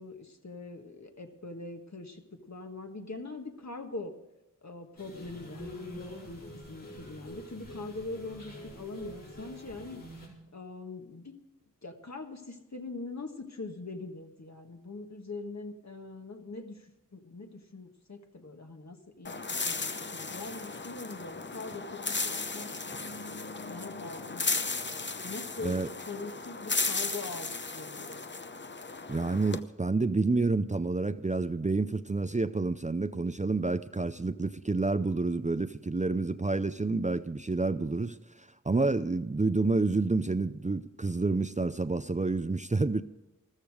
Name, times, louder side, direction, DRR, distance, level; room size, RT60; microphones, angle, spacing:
voice 1, 0.0-4.2 4.6-5.7 6.2-10.0 10.5-11.4 11.8-22.7 23.7-24.5 25.2-28.2, left 3 dB, 55° left, 1.6 m, -42 dB
sound 1, 5.0-10.3, equal, 80° left, 4.8 m, -45 dB
sound 2, 19.2-29.6, left 3 dB, 35° left, 0.8 m, -35 dB
voice 2, 29.1-43.0, right 3 dB, 20° right, 0.5 m, -29 dB
14.0 x 13.5 x 4.9 m
wide cardioid pair, 40°, 33 cm